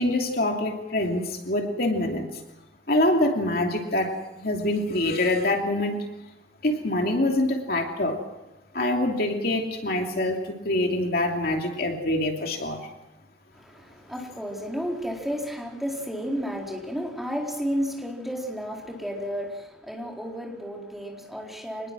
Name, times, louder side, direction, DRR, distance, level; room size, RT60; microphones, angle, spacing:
voice 1, 0.0-2.3 2.9-6.0 6.6-8.2 8.7-12.8, left 1 dB, 55° left, 2 dB, 2.9 m, -25 dB
voice 2, 13.5-21.9, equal, ahead, -1 dB, 4.3 m, -32 dB
26.0 x 20.5 x 6.2 m, 0.97 s
head